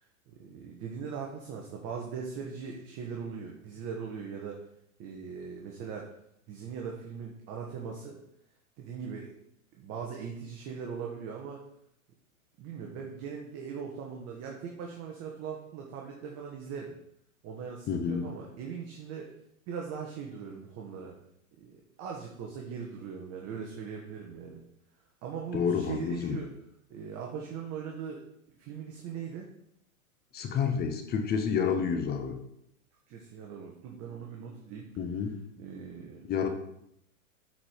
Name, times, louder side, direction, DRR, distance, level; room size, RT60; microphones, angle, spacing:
voice 1, 0.3-4.6 5.0-6.1 6.5-8.2 8.8-9.3 9.7-11.6 12.6-16.9 17.4-19.3 19.7-21.2 21.6-24.6 25.2-26.5 26.9-28.2 28.6-29.5 33.1-34.9 35.6-36.5, right 6 dB, 35° right, 0 dB, 1.3 m, -40 dB
voice 2, 17.9-18.3 25.5-26.4 30.3-32.4 35.0-35.4 36.2-36.5, left 6 dB, 20° left, 6 dB, 0.9 m, -29 dB
8.7 x 4.8 x 5.1 m, 0.76 s
hypercardioid pair, 120°, 44 cm